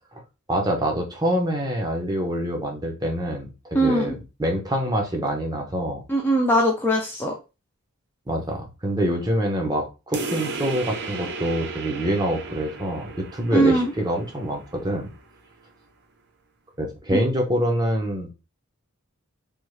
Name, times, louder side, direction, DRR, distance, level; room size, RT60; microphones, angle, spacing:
voice 1, 0.5-6.0 8.3-15.1 16.8-18.3, equal, 20° right, 1 dB, 0.7 m, -25 dB
voice 2, 3.7-4.1 6.1-7.3 13.5-13.9 17.1-17.2, right 1 dB, 10° left, -1 dB, 0.4 m, -20 dB
sound 1, 10.1-15.2, right 3 dB, 50° right, 0.6 m, -35 dB
3.5 x 2.4 x 3.1 m, 0.29 s
head